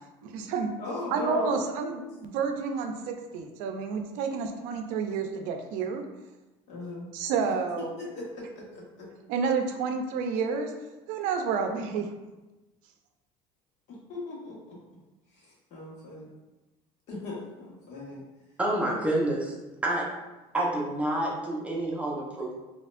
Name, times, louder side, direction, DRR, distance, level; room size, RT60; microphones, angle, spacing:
voice 1, 0.2-0.7 1.1-6.1 7.1-8.0 9.3-10.7 11.1-12.1, right 5 dB, 80° right, 5 dB, 0.5 m, -30 dB
voice 2, 0.8-1.9 6.7-7.1 7.4-7.5 8.0-9.1 14.1-14.8 15.3-16.3 17.1-18.2, left 2 dB, 65° left, -5 dB, 1.4 m, -38 dB
voice 3, 18.6-19.5 19.8-20.1 20.5-22.5, right 1 dB, 10° right, -3 dB, 0.8 m, -28 dB
4.2 x 2.9 x 2.5 m, 1.1 s
cardioid pair, 120°, 13 cm